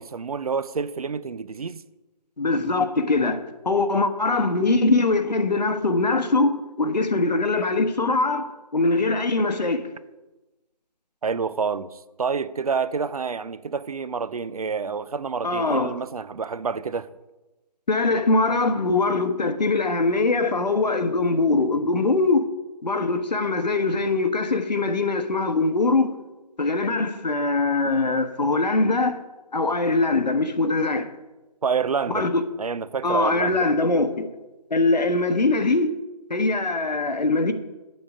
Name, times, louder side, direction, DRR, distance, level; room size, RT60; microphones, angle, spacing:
voice 1, 0.0-1.8 11.2-17.1 31.6-32.3 32.6-33.7, right 5 dB, 60° right, 0.6 m, -28 dB
voice 2, 2.4-9.9 15.4-15.9 17.9-22.5 22.8-26.1 26.6-29.2 29.5-31.1 32.1-32.4 33.0-34.3 34.7-35.9 36.3-37.5, left 3 dB, 80° left, 1.3 m, -22 dB
12.5 x 7.8 x 5.0 m
figure-of-eight pair, 160°, 21 cm